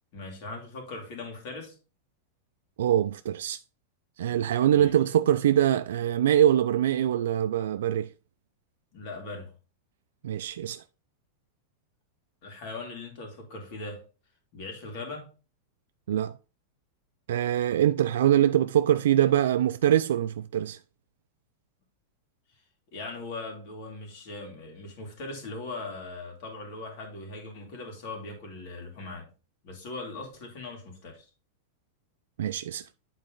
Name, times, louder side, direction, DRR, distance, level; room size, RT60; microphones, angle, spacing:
voice 1, 0.1-1.8 4.7-4.9 8.9-9.5 12.4-14.0 14.5-15.3 22.9-29.3 29.6-31.2, left 3 dB, 45° left, 2.7 m, -40 dB
voice 2, 2.8-3.6 4.2-8.1 10.2-10.8 16.1-16.3 17.3-20.8 32.4-32.8, right 11 dB, 85° right, 0.3 m, -23 dB
8.9 x 4.1 x 3.8 m
supercardioid pair, 160°, 0 cm